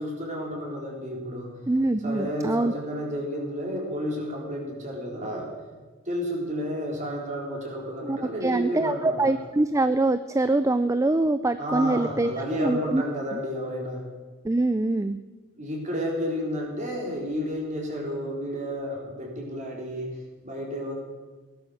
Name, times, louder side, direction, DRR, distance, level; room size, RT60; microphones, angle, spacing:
voice 1, 0.0-1.6 2.0-5.5 6.1-9.3 11.6-14.1 15.6-20.9, equal, 35° right, -1 dB, 4.2 m, -31 dB
voice 2, 1.7-2.7 8.0-12.3 12.6-13.0 14.4-15.2, right 2 dB, 15° right, 11 dB, 0.4 m, -24 dB
18.0 x 11.5 x 6.5 m, 1.4 s
head